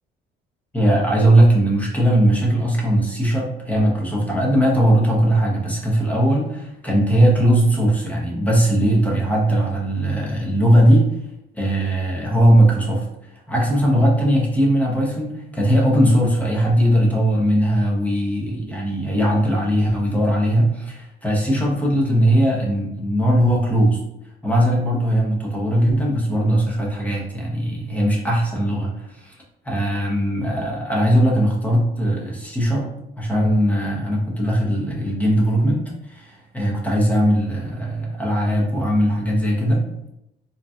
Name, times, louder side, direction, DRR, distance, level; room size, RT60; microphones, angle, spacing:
voice 1, 0.7-11.1 11.5-13.1 13.5-24.0 24.4-29.4 29.6-39.8, right 1 dB, 10° left, -3 dB, 0.9 m, -19 dB
3.7 x 2.8 x 2.4 m, 0.85 s
cardioid pair, 110°, 17 cm